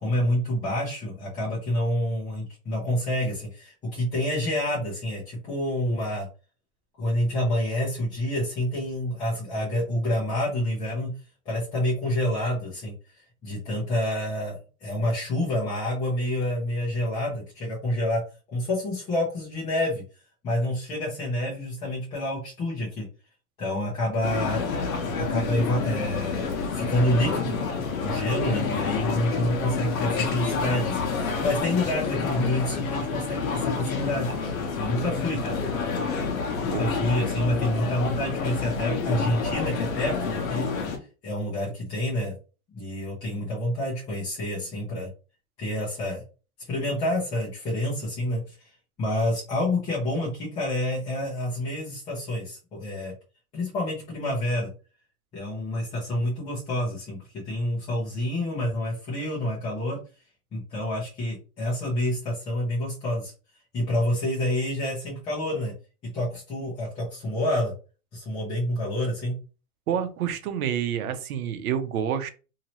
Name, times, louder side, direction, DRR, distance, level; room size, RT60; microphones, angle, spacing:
voice 1, 0.0-6.3 7.0-11.1 11.4-12.9 13.4-18.2 18.5-20.0 20.4-23.1 23.6-24.6 25.2-27.6 28.0-35.6 36.6-41.0 41.2-42.4 42.7-45.1 45.6-46.2 46.7-48.6 49.0-53.1 53.5-54.7 55.3-57.2 57.4-60.0 60.5-63.3 63.7-65.7 66.1-67.7 68.1-69.4, left 1 dB, 15° left, -9 dB, 0.9 m, -28 dB
sound 1, 24.2-41.0, left 5 dB, 70° left, 1.1 m, -28 dB
voice 2, 69.9-72.3, right 8 dB, 85° right, 9 dB, 0.8 m, -28 dB
2.9 x 2.8 x 2.9 m, 0.33 s
supercardioid pair, 170°, 43 cm